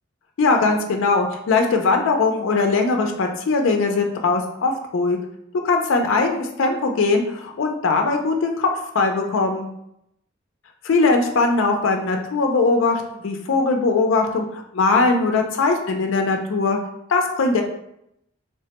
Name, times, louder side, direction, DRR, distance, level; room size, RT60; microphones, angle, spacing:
voice 1, 0.4-5.2 5.6-8.7 8.9-9.7 10.8-16.8 17.1-17.6, left 3 dB, 70° left, 3 dB, 0.4 m, -20 dB
3.1 x 2.1 x 2.8 m, 0.77 s
head